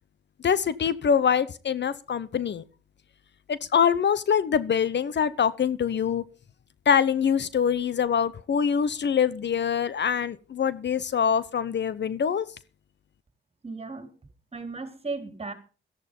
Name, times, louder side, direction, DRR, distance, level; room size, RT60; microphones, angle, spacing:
voice 1, 0.4-2.6 3.5-6.2 6.9-12.5, left 7 dB, 55° left, 18 dB, 0.8 m, -24 dB
voice 2, 13.6-14.1 14.5-15.5, right 3 dB, 30° right, 9 dB, 3.4 m, -35 dB
14.0 x 11.0 x 5.3 m, 0.35 s
cardioid pair, 80°, 21 cm